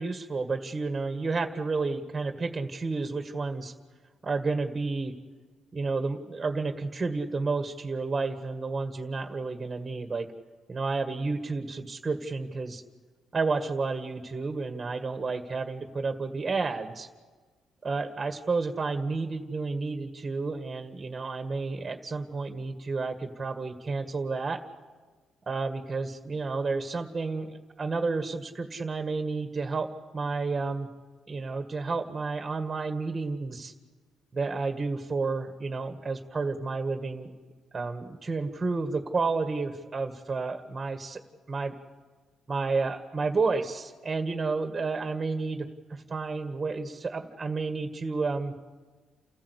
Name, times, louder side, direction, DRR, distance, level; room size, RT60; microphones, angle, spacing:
voice 1, 0.0-3.7 4.2-5.1 5.7-10.3 10.7-12.8 13.3-17.1 17.8-24.6 25.5-29.9 30.1-30.9 31.3-33.7 34.3-37.3 37.7-41.2 41.5-41.7 42.5-48.5, right 4 dB, 25° right, 7 dB, 1.9 m, -31 dB
29.5 x 14.5 x 8.3 m, 1.4 s
cardioid pair, 90°, 0 cm